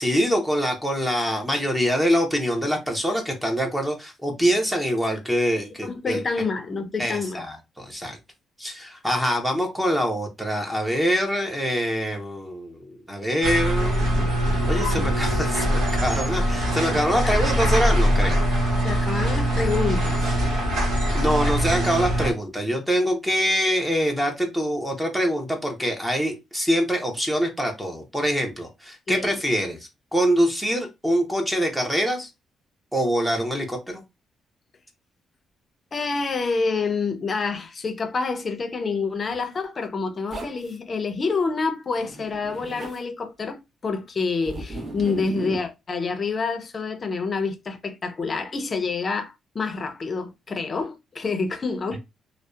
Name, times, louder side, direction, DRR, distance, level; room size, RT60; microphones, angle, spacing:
voice 1, 0.0-6.2 7.0-8.2 8.6-12.8 13.1-14.0 14.7-18.4 21.1-29.8 30.1-32.3 32.9-34.0, equal, 5° right, 0.7 m, -24 dB
voice 2, 5.8-7.4 17.2-17.4 18.8-20.2 29.1-29.4 35.9-52.0, left 4 dB, 40° left, 0.6 m, -27 dB
sound 1, 13.4-22.3, equal, 80° right, 0.9 m, -22 dB
Zipper (clothing), 40.3-40.8 41.9-43.0 44.4-45.7, right 1 dB, 35° right, 0.9 m, -36 dB
2.7 x 2.1 x 2.3 m
cardioid pair, 90°, 0 cm